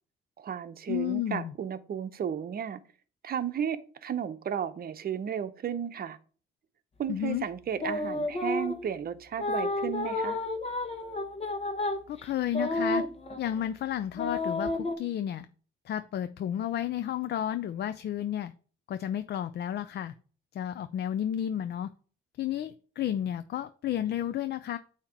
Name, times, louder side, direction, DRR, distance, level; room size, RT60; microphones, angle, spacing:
voice 1, 0.4-2.8 3.2-6.2 7.0-10.4, right 8 dB, 50° right, 0.8 m, -34 dB
voice 2, 0.9-1.5 7.1-7.5 12.1-13.0 13.4-15.5 15.9-18.5 18.9-20.1 20.5-21.9 22.4-24.8, left 11 dB, 55° left, 0.5 m, -32 dB
sound 1, 7.8-8.9 9.4-13.7 14.1-14.9, left 2 dB, 30° left, 1.3 m, -31 dB
8.7 x 2.9 x 5.8 m
cardioid pair, 90°, 20 cm